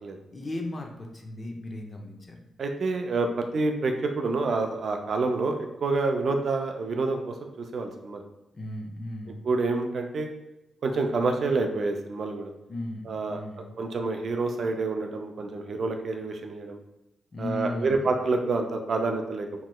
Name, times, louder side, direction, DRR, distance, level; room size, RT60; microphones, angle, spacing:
voice 1, 0.3-2.5 8.5-9.4 12.7-13.7 17.3-18.1, left 1 dB, 40° left, 2 dB, 0.5 m, -36 dB
voice 2, 2.6-8.2 9.4-10.3 10.8-12.5 13.1-13.4 13.8-16.8 17.4-19.6, right 3 dB, 65° right, 4 dB, 0.4 m, -28 dB
3.0 x 2.8 x 2.2 m, 0.95 s
cardioid pair, 80°, 0 cm